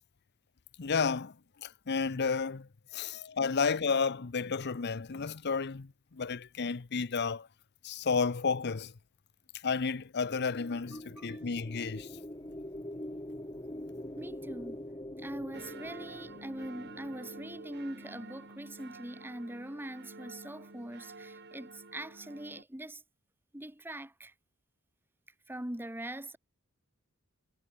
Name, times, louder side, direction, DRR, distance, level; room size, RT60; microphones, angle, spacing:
voice 1, 0.8-7.5 7.8-8.9 9.6-12.2, left 5 dB, 50° left, 0.7 m, -32 dB
sound 1, 10.5-18.7, left 1 dB, 20° left, 2.7 m, -44 dB
voice 2, 10.9-11.4 14.1-14.8 15.2-23.0 23.5-24.3 25.5-26.4, right 1 dB, 10° right, 1.6 m, -42 dB
sound 2, 15.5-22.6, right 3 dB, 50° right, 3.3 m, -49 dB
head